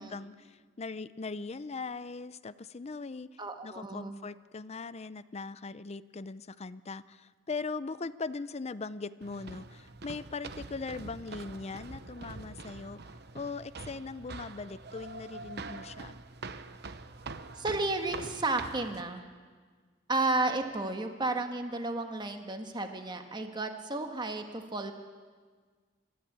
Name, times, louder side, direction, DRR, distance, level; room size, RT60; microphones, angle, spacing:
voice 1, 0.0-3.3 3.6-13.0 13.3-16.2, left 4 dB, 35° left, 16 dB, 0.5 m, -40 dB
voice 2, 3.4-4.2 17.5-19.2 20.1-24.9, right 2 dB, 25° right, 5 dB, 1.5 m, -32 dB
sound 1, 9.2-19.0, right 3 dB, 60° right, 0.9 m, -45 dB
28.0 x 13.5 x 8.7 m, 1.5 s
head